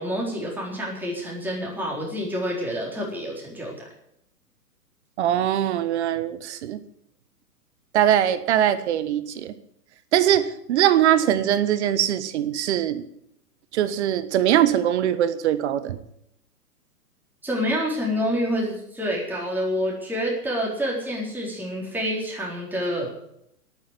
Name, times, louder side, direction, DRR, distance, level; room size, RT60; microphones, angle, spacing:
voice 1, 0.0-3.9 17.4-23.1, equal, 5° right, -3 dB, 4.1 m, -28 dB
voice 2, 5.2-6.8 7.9-9.5 10.1-13.0 13.7-16.0, right 11 dB, 45° right, 13 dB, 1.4 m, -22 dB
11.5 x 9.3 x 10.0 m, 0.76 s
figure-of-eight pair, 120°, 47 cm